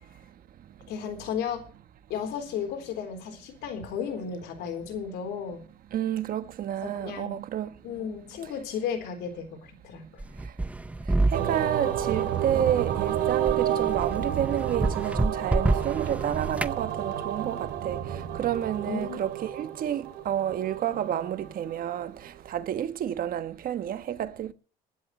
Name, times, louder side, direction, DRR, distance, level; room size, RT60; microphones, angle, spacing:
voice 1, 0.9-1.7 2.1-5.6 6.8-7.4 7.8-10.2 18.9-19.3, left 7 dB, 85° left, 3.9 m, -34 dB
voice 2, 5.9-7.7 11.3-24.5, right 10 dB, 60° right, 1.2 m, -30 dB
sound 1, 10.2-16.8, right 2 dB, 10° right, 0.6 m, -29 dB
sound 2, 11.3-21.7, right 10 dB, 80° right, 3.0 m, -30 dB
21.5 x 11.0 x 3.2 m
cardioid pair, 110°, 17 cm